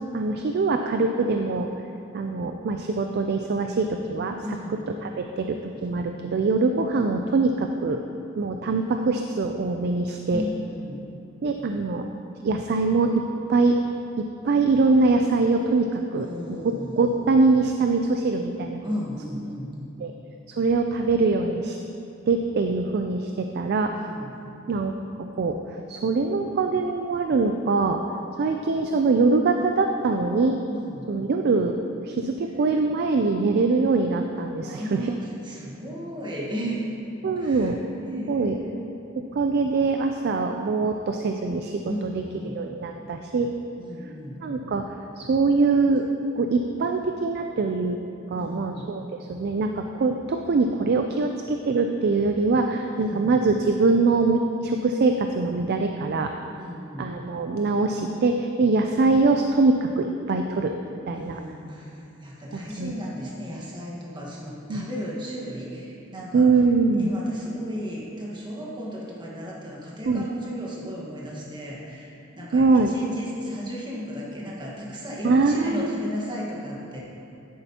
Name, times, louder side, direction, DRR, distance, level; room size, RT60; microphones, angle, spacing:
voice 1, 0.1-1.7 2.1-4.4 5.0-8.0 8.4-10.4 11.4-12.1 12.4-13.2 13.5-13.8 14.2-16.3 17.0-18.8 20.0-20.1 20.6-21.8 22.3-23.9 24.7-25.6 25.9-28.0 28.4-30.6 31.1-35.1 37.2-37.8 38.1-38.6 39.2-42.1 42.4-43.5 44.4-46.1 46.3-48.0 48.3-49.0 49.3-56.3 57.0-60.7 61.1-61.4 62.5-62.9 64.7-64.8 66.3-67.1 70.1-70.2 72.5-72.9 75.2-76.1, right 3 dB, 55° right, 5 dB, 0.4 m, -23 dB
voice 2, 4.4-4.8 5.7-6.1 10.3-11.1 16.1-17.0 18.8-19.7 23.9-24.3 30.7-31.1 34.6-36.8 37.4-37.8 38.0-38.8 41.8-42.6 43.8-44.4 48.4-48.9 52.9-53.4 56.5-57.1 61.1-66.5 67.0-77.0, equal, 25° right, -5 dB, 1.4 m, -35 dB
10.0 x 8.3 x 2.9 m, 2.8 s
head